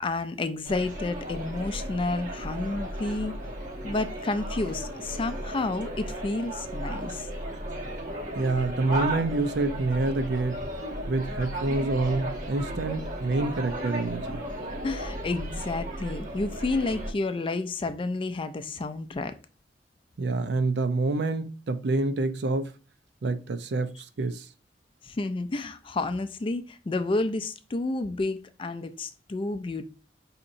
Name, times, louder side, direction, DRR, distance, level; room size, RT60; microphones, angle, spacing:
voice 1, 0.0-3.3 3.8-7.3 14.8-19.3 25.0-29.9, left 2 dB, 30° left, 0.4 m, -30 dB
sound 1, 0.6-17.1, right 1 dB, 50° right, 0.8 m, -35 dB
voice 2, 8.3-10.6 11.1-14.4 20.2-22.7 23.2-24.4, right 3 dB, 70° right, 0.5 m, -27 dB
5.1 x 2.8 x 2.6 m
head